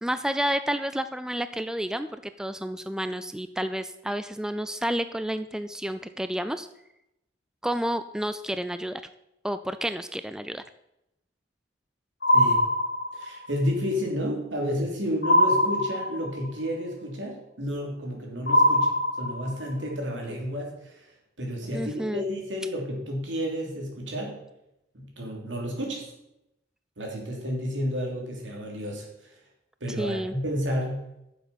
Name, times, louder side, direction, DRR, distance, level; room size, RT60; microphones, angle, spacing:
voice 1, 0.0-6.7 7.6-9.0 9.4-10.6 21.7-22.2 30.0-30.3, equal, 5° right, 11 dB, 0.3 m, -30 dB
sound 1, 12.2-13.5 15.2-16.5 18.5-19.7, left 1 dB, 55° left, 1.9 m, -22 dB
voice 2, 13.1-21.1 21.4-24.4 24.9-26.1 27.0-29.3 29.8-31.0, equal, 85° right, 0 dB, 2.9 m, -31 dB
9.4 x 6.9 x 5.9 m, 0.86 s
head